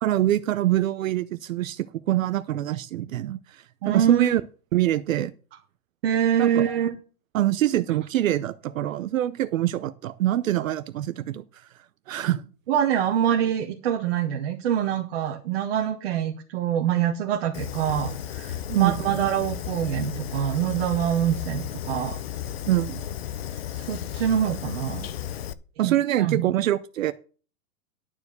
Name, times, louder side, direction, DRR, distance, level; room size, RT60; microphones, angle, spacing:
voice 1, 0.0-4.4 4.7-5.3 6.4-6.6 7.3-11.4 12.1-12.4 18.7-19.0 22.7-23.0 25.8-27.1, right 13 dB, 60° right, 0.7 m, -24 dB
voice 2, 3.8-4.3 6.0-7.0 7.9-8.0 12.2-12.3 12.7-22.2 23.7-25.1 25.8-26.5, right 9 dB, 45° right, 1.4 m, -25 dB
Fire, 17.5-25.5, left 10 dB, 45° left, 0.6 m, -34 dB
11.5 x 4.8 x 8.1 m
supercardioid pair, 170°, 45 cm